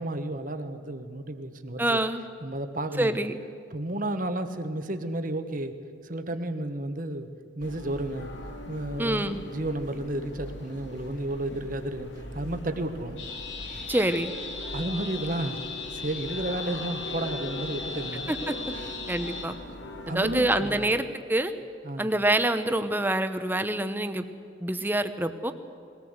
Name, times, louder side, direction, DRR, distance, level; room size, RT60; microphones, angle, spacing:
voice 1, 0.0-2.0 2.4-3.2 3.7-5.7 6.0-7.3 7.5-8.3 8.7-13.3 13.6-13.9 14.7-15.6 15.9-18.3 18.7-18.9 20.1-20.9 21.8-22.2, right 1 dB, 45° right, 8 dB, 1.3 m, -32 dB
voice 2, 1.8-2.2 3.0-3.4 9.0-9.4 13.9-14.3 18.3-18.5 19.1-19.6 20.1-21.5 22.0-24.2 24.6-25.5, right 1 dB, 10° right, 9 dB, 0.9 m, -26 dB
sound 1, 7.6-20.9, left 1 dB, 70° left, 2.3 m, -41 dB
sound 2, 13.2-19.4, left 4 dB, 90° left, 3.7 m, -38 dB
21.5 x 18.0 x 8.0 m, 2.6 s
head